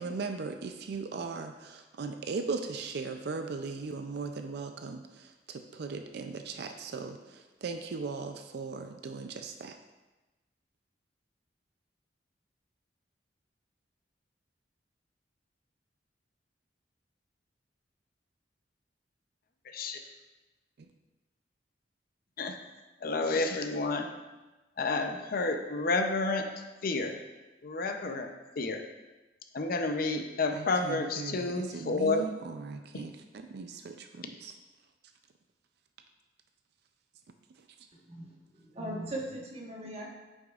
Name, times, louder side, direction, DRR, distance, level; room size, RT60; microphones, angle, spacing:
voice 1, 0.0-9.8 20.8-20.9 30.5-34.5, right 4 dB, 60° right, 6 dB, 0.4 m, -38 dB
voice 2, 23.0-24.1 24.8-26.5 26.8-27.1 27.6-28.3 28.6-28.8 29.5-32.3, left 3 dB, 55° left, 5 dB, 0.6 m, -30 dB
voice 3, 37.9-40.1, right 1 dB, 35° right, -2 dB, 1.3 m, -39 dB
9.0 x 6.2 x 2.4 m, 1.1 s
head